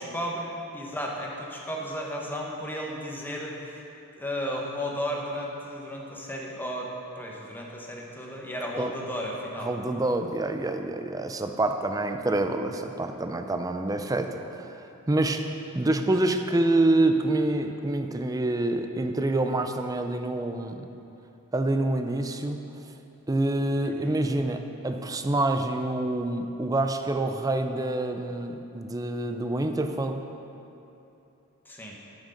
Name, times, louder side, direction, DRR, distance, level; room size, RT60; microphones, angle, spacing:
voice 1, 0.0-3.8 4.2-6.9 7.1-9.7 23.8-24.2 31.7-32.0, equal, 10° left, -2 dB, 1.1 m, -34 dB
voice 2, 9.6-14.8 15.1-15.5 15.7-20.9 21.5-22.6 23.3-30.2, right 2 dB, 15° right, 6 dB, 0.4 m, -27 dB
11.5 x 6.3 x 5.2 m, 2.9 s
head